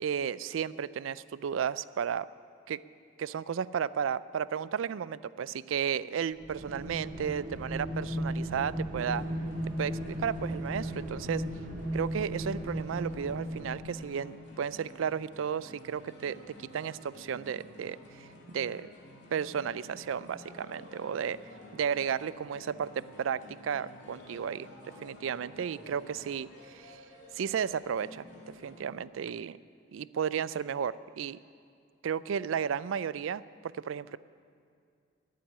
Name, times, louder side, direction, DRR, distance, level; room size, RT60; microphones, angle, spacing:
voice 1, 0.0-2.3 2.7-2.8 3.2-9.2 9.8-11.4 11.9-18.9 19.3-21.4 21.7-24.7 25.0-27.0 27.3-28.2 28.6-29.6 29.9-31.4 32.0-34.2, right 7 dB, 85° right, 18 dB, 0.4 m, -33 dB
sound 1, 6.4-14.0, equal, 45° right, 1.7 m, -36 dB
sound 2, 9.0-28.9, left 1 dB, 60° left, 2.6 m, -52 dB
14.5 x 7.7 x 10.0 m, 2.3 s
head